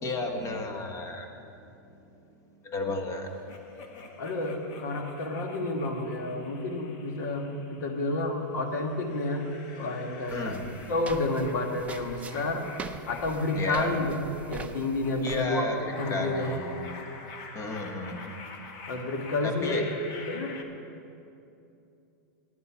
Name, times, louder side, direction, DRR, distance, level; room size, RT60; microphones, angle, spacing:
voice 1, 0.0-1.3 1.9-2.0 2.6-3.3 10.3-10.6 13.5-13.9 15.2-15.8 16.1-17.0 17.5-18.2 19.4-19.8, left 3 dB, 25° left, 4 dB, 1.3 m, -33 dB
sound 1, 3.5-8.2 8.7-20.6, left 4 dB, 45° left, 1.2 m, -47 dB
voice 2, 4.2-9.5 9.8-12.6 13.1-15.7 16.0-16.5 18.9-19.9 20.3-20.6, left 2 dB, 70° left, 4 dB, 1.6 m, -30 dB
sound 2, 10.3-15.4, right 5 dB, 15° right, 0.5 m, -43 dB
9.9 x 9.5 x 7.3 m, 2.7 s
supercardioid pair, 140°, 10 cm